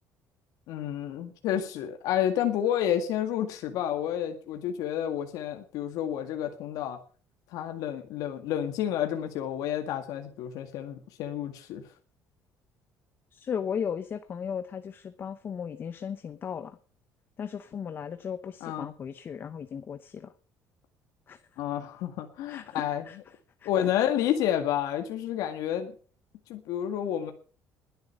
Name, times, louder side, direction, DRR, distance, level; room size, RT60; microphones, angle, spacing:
voice 1, 0.7-7.0 7.5-11.9 18.6-18.9 21.6-23.0 23.6-25.9 26.5-27.3, left 10 dB, 80° left, 6 dB, 1.9 m, -30 dB
voice 2, 13.3-16.8 17.4-20.3 21.3-21.4 22.5-23.3 23.6-23.7, left 7 dB, 35° left, 11 dB, 1.0 m, -36 dB
21.0 x 8.0 x 6.8 m, 0.41 s
cardioid pair, 145°, 6 cm